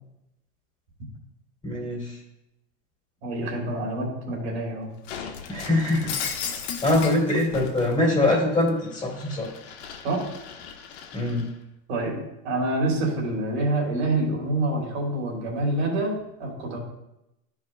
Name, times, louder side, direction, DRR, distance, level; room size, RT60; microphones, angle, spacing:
voice 1, 1.6-2.2 5.5-6.3 6.8-9.5 11.1-11.5, left 2 dB, 15° left, -6 dB, 2.3 m, -23 dB
voice 2, 3.2-4.9 10.0-10.3 11.9-12.2 12.4-16.1 16.4-16.8, right 2 dB, 80° right, -2 dB, 2.7 m, -26 dB
Shatter, 5.1-7.9 8.3-11.5, left 7 dB, 80° left, 1.1 m, -36 dB
13.0 x 4.9 x 2.2 m, 0.88 s
supercardioid pair, 155°, 32 cm